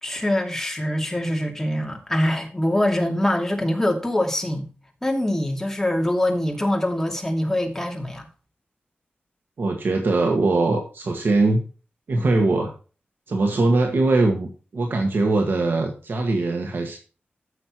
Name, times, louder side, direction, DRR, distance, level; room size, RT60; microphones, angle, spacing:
voice 1, 0.0-4.7 5.0-8.3, left 1 dB, 10° left, 2.6 m, -24 dB
voice 2, 9.6-11.6 12.1-12.7 13.3-17.0, right 2 dB, 70° right, 1.7 m, -21 dB
14.5 x 6.5 x 3.0 m
wide cardioid pair, 95°, 4 cm